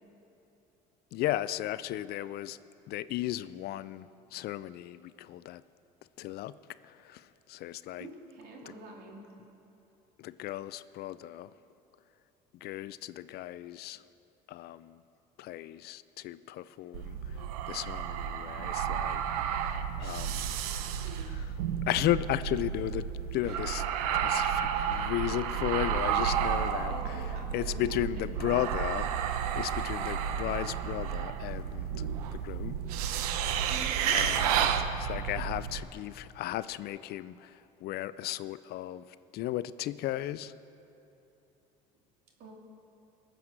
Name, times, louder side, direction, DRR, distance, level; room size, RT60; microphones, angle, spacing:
voice 1, 1.1-2.6 2.9-5.6 6.2-6.6 6.8-8.1 10.2-11.5 12.6-14.0 14.5-15.0 15.4-17.4 17.7-19.2 19.6-20.6 21.2-21.6 21.9-23.8 24.1-27.2 27.5-31.9 32.3-32.8 34.1-34.7 35.0-39.0 39.3-40.5, left 14 dB, 60° left, 0.4 m, -35 dB
voice 2, 8.0-9.3 23.4-23.9 24.7-25.1 26.9-28.7 33.7-34.2 42.4-42.5, right 2 dB, 60° right, 2.7 m, -47 dB
sound 1, 16.9-35.8, right 8 dB, 90° right, 0.8 m, -31 dB
19.0 x 7.7 x 6.6 m
supercardioid pair, 85°, 19 cm